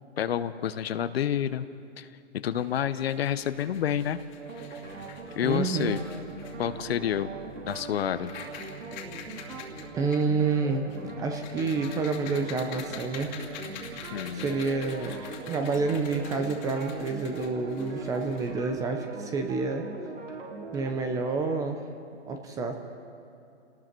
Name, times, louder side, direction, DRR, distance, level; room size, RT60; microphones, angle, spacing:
voice 1, 0.2-1.7 2.0-2.1 2.4-4.2 5.4-6.0 6.6-7.3 7.6-8.3 14.1-14.6, left 9 dB, 55° left, 13 dB, 1.0 m, -29 dB
sound 1, 2.6-18.8, left 7 dB, 35° left, 2.4 m, -47 dB
sound 2, 4.4-20.9, right 3 dB, 85° right, 4.2 m, -41 dB
voice 2, 5.4-5.9 10.0-10.9 11.2-13.4 14.3-15.2 15.4-19.8 20.7-21.8 22.3-22.7, right 4 dB, 10° right, 5 dB, 0.7 m, -28 dB
30.0 x 19.0 x 4.6 m, 2.6 s
hypercardioid pair, 150°, 37 cm